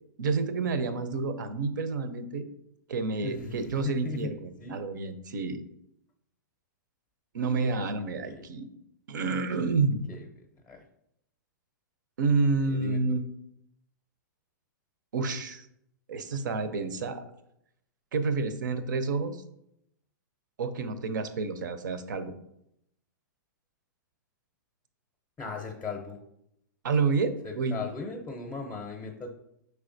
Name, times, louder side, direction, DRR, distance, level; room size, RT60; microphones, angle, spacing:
voice 1, 0.2-2.5 2.9-5.6 7.3-8.7 9.1-10.1 12.2-13.2 15.1-15.7 16.1-17.2 18.1-19.4 20.6-22.3 26.8-27.9, right 4 dB, 75° right, 11 dB, 0.5 m, -29 dB
voice 2, 3.2-3.5 3.8-4.3 4.6-4.8 8.2-8.4 10.1-10.3 10.7-10.8 12.7-13.0 25.4-26.2 27.4-29.3, left 4 dB, 15° left, 3 dB, 0.5 m, -37 dB
5.6 x 3.3 x 2.6 m, 0.79 s
hypercardioid pair, 120°, 10 cm